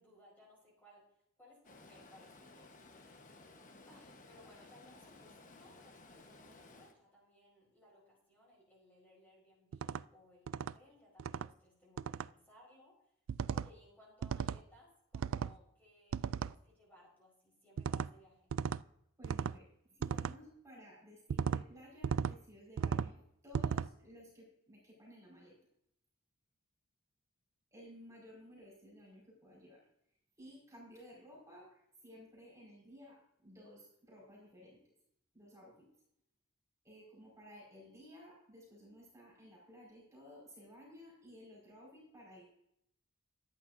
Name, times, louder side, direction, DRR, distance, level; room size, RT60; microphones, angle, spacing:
voice 1, 0.0-13.1 13.5-18.6, left 1 dB, 10° left, -5 dB, 5.1 m, -63 dB
Stream, 1.6-6.9, left 2 dB, 40° left, 1.2 m, -57 dB
sound 1, 9.7-10.0 10.5-10.7 11.2-11.5 12.0-12.3 13.3-13.7 14.2-14.6 15.1-15.5 16.1-16.5 17.8-18.1 18.5-18.8 19.2-19.6 20.0-20.3 21.3-21.6 22.0-22.3 22.8-23.1 23.5-23.9, right 7 dB, 75° right, 0.3 m, -35 dB
voice 2, 19.2-25.6 27.7-29.9 30.4-34.9 35.3-35.9 36.8-42.4, equal, 15° right, -5 dB, 5.1 m, -56 dB
14.5 x 10.5 x 2.7 m, 0.76 s
head